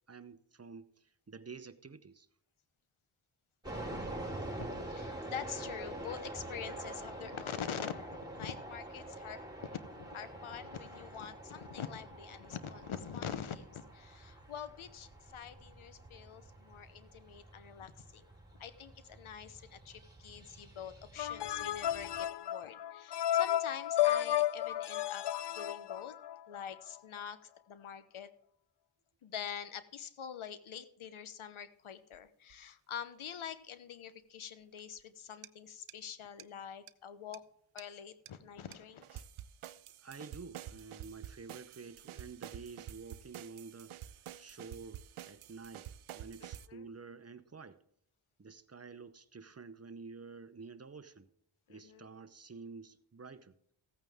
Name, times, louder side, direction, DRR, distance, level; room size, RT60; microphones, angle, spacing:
voice 1, 0.1-2.3 40.0-47.8 48.4-51.3 51.7-53.5, right 4 dB, 30° right, 12 dB, 0.8 m, -50 dB
sound 1, 3.6-22.2, right 1 dB, 10° right, 4.1 m, -46 dB
voice 2, 4.6-18.3 18.6-25.3 25.5-26.1 26.5-28.3 29.2-37.4 37.7-39.2 46.7-46.9 51.7-52.1, left 8 dB, 80° left, 12 dB, 1.0 m, -45 dB
sound 2, 21.2-26.6, left 12 dB, 60° left, 0.5 m, -33 dB
sound 3, 32.1-32.2 32.5-32.6 35.4-35.5 35.9-36.0 36.4-36.5 36.9-37.0 37.3-37.4 37.8-37.9 38.3-38.4 38.7-38.8 39.0-46.7, right 11 dB, 80° right, 0.6 m, -49 dB
15.0 x 9.0 x 3.5 m, 0.71 s
cardioid pair, 60°, 49 cm